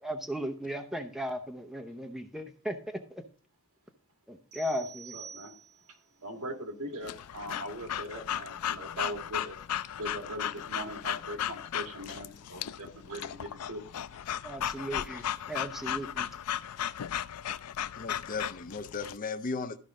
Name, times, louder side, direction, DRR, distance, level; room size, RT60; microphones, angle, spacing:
voice 1, 0.0-3.2 4.3-5.2 14.4-16.3, equal, ahead, 5 dB, 0.7 m, -36 dB
sound 1, 4.5-6.0, right 7 dB, 35° right, 3.9 m, -48 dB
voice 2, 5.1-5.5 5.9-9.6 10.0-13.8 14.7-14.8, right 1 dB, 70° right, 4 dB, 1.9 m, -40 dB
Breathing / Dog, 7.0-19.2, left 10 dB, 85° left, 0.4 m, -36 dB
voice 3, 18.0-19.8, left 4 dB, 40° left, 10 dB, 0.5 m, -36 dB
13.5 x 5.2 x 3.7 m, 0.41 s
head